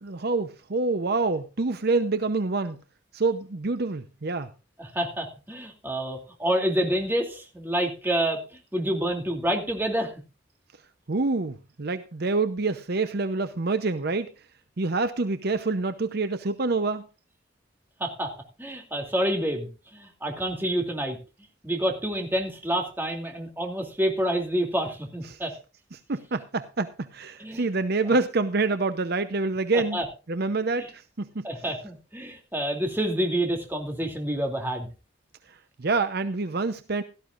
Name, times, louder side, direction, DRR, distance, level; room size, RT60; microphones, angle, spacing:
voice 1, 0.0-2.8 3.1-4.5 11.1-14.3 14.8-17.1 25.3-25.4 25.9-30.0 30.3-31.5 35.8-37.0, right 3 dB, 55° right, 11 dB, 0.7 m, -27 dB
voice 2, 4.8-8.4 8.7-10.1 18.0-18.3 18.6-21.2 21.6-25.5 27.4-27.7 28.0-28.1 29.9-30.1 30.8-30.9 31.4-34.9, right 1 dB, 10° right, 2 dB, 2.7 m, -28 dB
17.0 x 13.0 x 2.5 m, 0.31 s
head